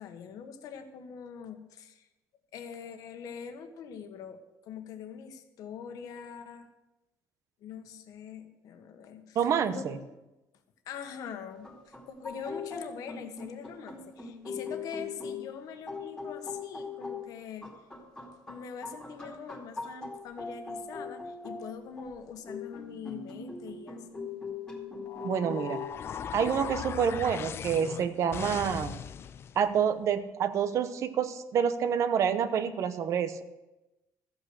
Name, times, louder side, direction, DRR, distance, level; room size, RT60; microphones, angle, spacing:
voice 1, 0.0-2.1 2.5-6.7 7.6-9.4 9.7-10.0 10.9-17.7 18.5-24.2, left 7 dB, 65° left, 7 dB, 1.4 m, -43 dB
voice 2, 9.3-10.0 25.2-25.8 26.3-29.0 29.5-33.4, right 7 dB, 50° right, 11 dB, 0.9 m, -28 dB
sound 1, 11.5-25.8, left 4 dB, 10° left, 2.4 m, -41 dB
sound 2, 25.1-29.6, left 8 dB, 35° left, 0.4 m, -39 dB
14.5 x 8.5 x 6.4 m, 1.0 s
cardioid pair, 155°, 7 cm